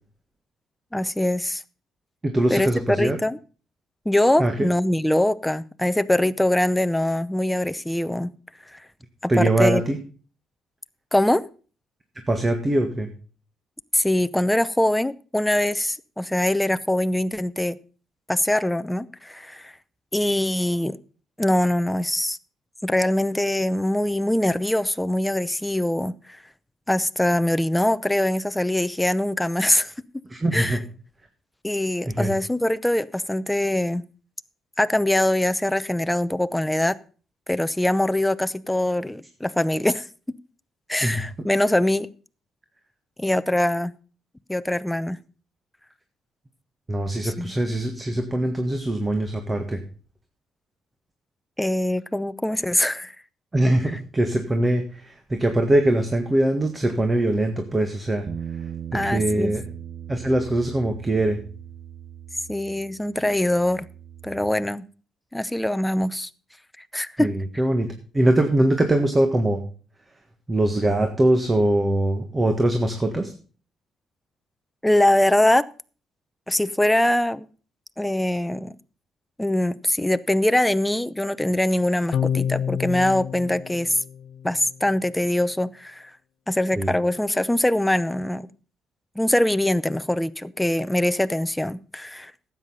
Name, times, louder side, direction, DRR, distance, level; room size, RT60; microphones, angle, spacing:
voice 1, 0.9-1.6 2.5-2.7 3.0-3.4 4.1-8.3 8.7-8.8 9.2-9.8 11.1-11.4 13.9-17.8 18.3-19.7 20.1-21.0 21.4-22.4 22.8-26.2 26.9-29.9 30.5-30.8 31.6-34.0 34.8-37.0 37.5-40.1 40.9-42.1 43.2-43.9 44.5-45.2 47.2-47.5 51.6-53.1 58.9-59.5 62.5-63.9 64.2-64.9 65.3-66.3 66.9-67.3 74.8-75.7 76.5-77.5 78.0-78.8 79.4-84.0 84.4-86.1 86.5-88.4 89.2-92.3, left 1 dB, 5° left, 0.6 m, -23 dB
voice 2, 2.2-3.2 4.4-4.7 9.3-10.0 12.3-13.1 30.3-30.8 32.1-32.3 41.0-41.2 46.9-49.8 53.5-58.3 58.9-59.6 60.1-61.4 67.2-67.9 68.1-69.6 70.5-73.3 86.8-86.9, right 1 dB, 20° right, 1.6 m, -22 dB
Bass guitar, 58.3-64.5, right 9 dB, 50° right, 0.6 m, -38 dB
sound 1, 82.1-84.7, left 8 dB, 65° left, 0.5 m, -28 dB
12.5 x 8.4 x 5.5 m
cardioid pair, 90°, 0 cm